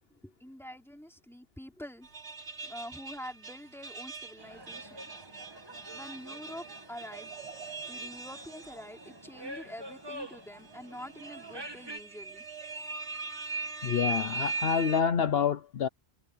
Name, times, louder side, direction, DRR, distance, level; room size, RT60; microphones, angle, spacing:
voice 1, 0.2-2.1 2.6-5.1 5.9-7.3 7.9-12.4, equal, ahead, 2.8 m, -46 dB
sound 1, 2.0-9.1 9.5-9.6 10.6-15.0, right 3 dB, 65° right, 2.1 m, -40 dB
sound 2, 4.4-12.0, right 1 dB, 20° right, 1.6 m, -47 dB
voice 2, 13.8-15.9, left 7 dB, 60° left, 0.9 m, -27 dB
omnidirectional pair, 1.2 m